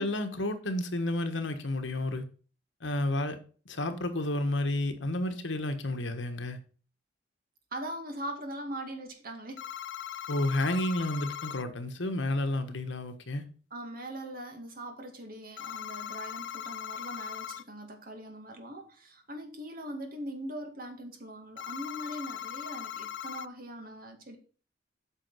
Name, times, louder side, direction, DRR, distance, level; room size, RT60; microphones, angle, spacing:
voice 1, 0.0-2.2 2.8-3.4 3.7-6.6 10.3-13.5, left 1 dB, 80° left, 1.4 m, -31 dB
voice 2, 7.7-9.6 13.7-24.4, right 1 dB, 50° right, 2.1 m, -41 dB
sound 1, 9.6-11.6 15.6-17.6 21.6-23.5, left 10 dB, 65° left, 0.3 m, -39 dB
8.8 x 5.7 x 5.6 m
head